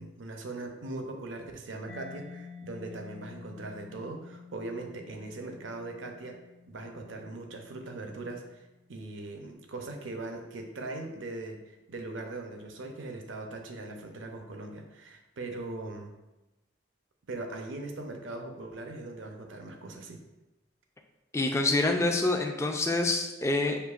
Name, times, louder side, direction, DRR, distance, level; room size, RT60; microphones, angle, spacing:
voice 1, 0.0-6.4 6.7-16.2 17.3-20.2, right 2 dB, 75° right, 3 dB, 0.6 m, -40 dB
Mallet percussion, 1.9-9.4, left 5 dB, 70° left, 0.6 m, -50 dB
voice 2, 21.3-23.8, left 2 dB, 15° left, 3 dB, 0.3 m, -26 dB
6.6 x 2.7 x 2.4 m, 1.0 s
head